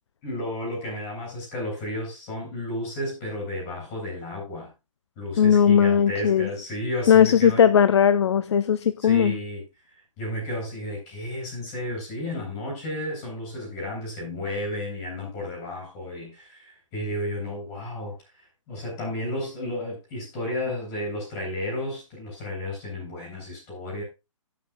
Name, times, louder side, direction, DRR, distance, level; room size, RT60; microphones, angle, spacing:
voice 1, 0.2-4.7 5.2-7.7 9.0-9.6 10.2-18.2 18.7-24.0, left 1 dB, 20° left, 7.0 m, -32 dB
voice 2, 5.4-6.5 7.1-9.4, left 8 dB, 55° left, 0.5 m, -18 dB
19.0 x 6.7 x 2.5 m
hypercardioid pair, 165°, 17 cm